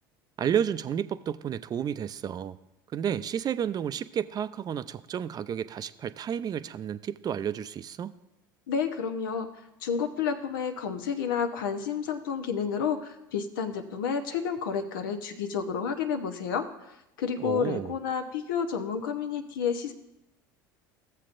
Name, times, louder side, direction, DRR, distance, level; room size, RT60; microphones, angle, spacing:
voice 1, 0.4-2.6 2.9-8.1 17.4-17.9, right 8 dB, 35° right, 14 dB, 0.5 m, -31 dB
voice 2, 8.7-9.5 9.8-16.6 17.2-19.9, left 6 dB, 80° left, 7 dB, 0.9 m, -30 dB
14.5 x 7.4 x 2.6 m, 0.90 s
hypercardioid pair, 80°, 11 cm